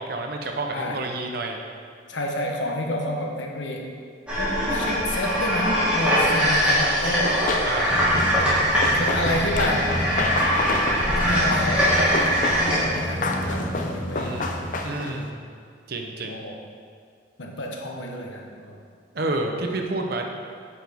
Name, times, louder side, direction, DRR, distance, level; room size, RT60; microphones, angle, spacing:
voice 1, 0.0-1.6 7.6-8.0 14.1-14.6 14.8-15.4 15.9-16.4 19.1-20.2, right 2 dB, 55° right, 3 dB, 0.8 m, -29 dB
voice 2, 0.7-1.0 2.1-3.9 4.4-7.5 8.9-10.0 10.9-14.3 16.2-16.6 17.4-18.8, left 1 dB, 75° left, 1 dB, 1.0 m, -30 dB
sound 1, 4.3-12.8, equal, 5° right, 2.0 m, -22 dB
Run, 7.1-15.2, left 2 dB, 45° left, 0.6 m, -30 dB
sound 2, 7.9-14.8, equal, 25° left, 1.0 m, -31 dB
8.9 x 6.1 x 3.6 m, 2.1 s
head